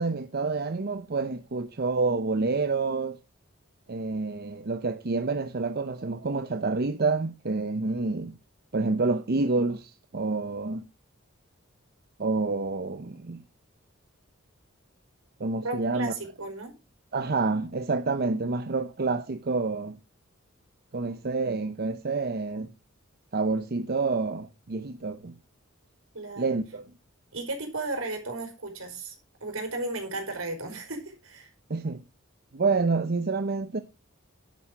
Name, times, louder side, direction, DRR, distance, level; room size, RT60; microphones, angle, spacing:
voice 1, 0.0-3.2 3.9-8.3 8.7-10.8 12.2-13.4 15.4-16.1 17.1-20.0 20.9-22.7 23.3-25.3 26.4-26.9 31.7-32.0 32.5-33.8, right 3 dB, 50° right, 0.8 m, -28 dB
voice 2, 15.6-16.7 26.1-26.6 27.3-29.1 29.4-31.5, right 2 dB, 75° right, 4.8 m, -34 dB
10.5 x 8.6 x 4.9 m
head